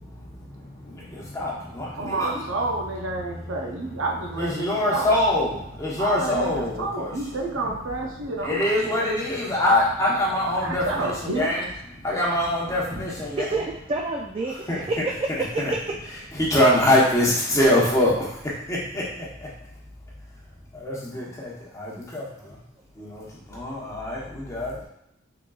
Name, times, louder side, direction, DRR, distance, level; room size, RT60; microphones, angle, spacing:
voice 1, 0.0-2.4 4.4-7.1 8.4-11.7 12.0-13.4 14.7-14.8 15.6-15.7 16.3-19.5 20.7-22.6 22.9-24.8, left 1 dB, 15° left, -5 dB, 0.9 m, -24 dB
voice 2, 2.0-5.2 6.0-9.0 10.6-11.6, right 2 dB, 90° right, 0 dB, 0.7 m, -29 dB
voice 3, 13.4-15.8, right 3 dB, 25° right, -1 dB, 0.3 m, -28 dB
3.8 x 3.7 x 2.3 m, 0.78 s
head